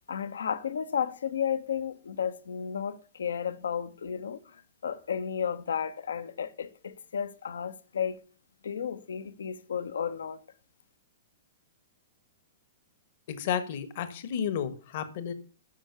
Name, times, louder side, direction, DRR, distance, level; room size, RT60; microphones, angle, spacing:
voice 1, 0.1-4.4 4.8-8.2 8.6-10.4, left 7 dB, 70° left, 0.9 m, -33 dB
voice 2, 13.3-15.3, left 8 dB, 50° left, 1.3 m, -32 dB
9.4 x 6.3 x 6.8 m
figure-of-eight pair, 105°, 0 cm